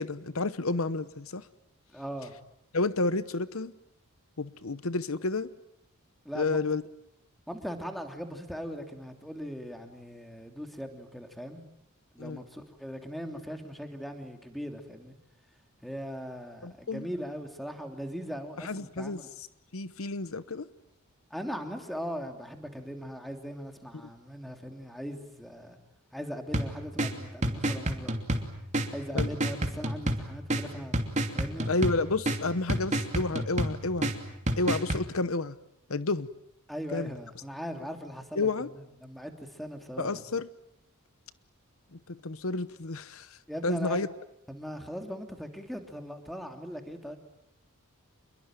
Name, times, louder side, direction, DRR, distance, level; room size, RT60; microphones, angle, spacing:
voice 1, 0.0-1.4 2.7-3.7 4.4-5.5 6.3-6.8 12.2-12.4 16.6-17.1 18.6-19.2 19.7-20.7 29.1-29.3 31.7-34.1 34.6-35.6 35.9-36.3 36.9-37.1 38.4-38.7 40.0-40.5 41.9-43.4 43.6-44.1, left 3 dB, 65° left, 15 dB, 1.0 m, -30 dB
voice 2, 1.9-2.3 6.2-6.6 7.5-11.6 12.1-15.2 15.8-19.3 21.3-25.8 26.1-28.1 28.9-31.0 31.3-31.7 36.7-40.2 43.5-44.0 44.5-47.2, equal, ahead, 5 dB, 3.0 m, -39 dB
sound 1, 26.5-35.0, right 1 dB, 35° right, 2.9 m, -31 dB
27.5 x 22.5 x 9.0 m, 0.80 s
head